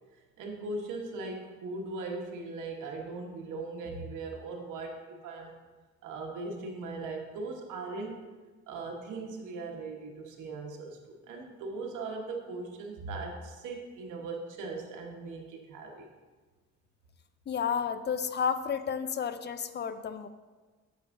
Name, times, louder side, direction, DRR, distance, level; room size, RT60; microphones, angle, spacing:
voice 1, 0.4-5.6 6.0-8.2 8.7-16.1, right 3 dB, 85° right, 1 dB, 1.2 m, -39 dB
voice 2, 17.5-20.3, left 7 dB, 35° left, 12 dB, 0.4 m, -31 dB
8.5 x 6.8 x 2.6 m, 1.3 s
cardioid pair, 90°, 30 cm